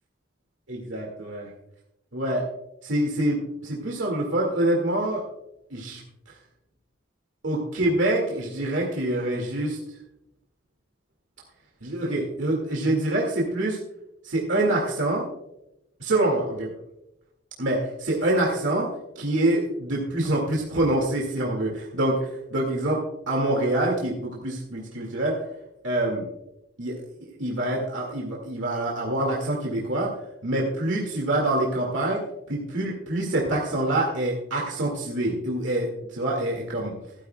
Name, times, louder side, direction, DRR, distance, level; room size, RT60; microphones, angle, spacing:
voice 1, 0.7-1.5 2.1-2.5 2.8-5.2 5.7-6.0 7.4-9.8 11.8-13.8 14.2-15.3 16.0-16.7 17.6-18.9 19.2-25.4 25.8-26.2 26.8-30.1 30.4-32.2 32.5-36.9, right 1 dB, 80° right, -1 dB, 2.0 m, -26 dB
16.5 x 12.5 x 2.2 m, 0.88 s
head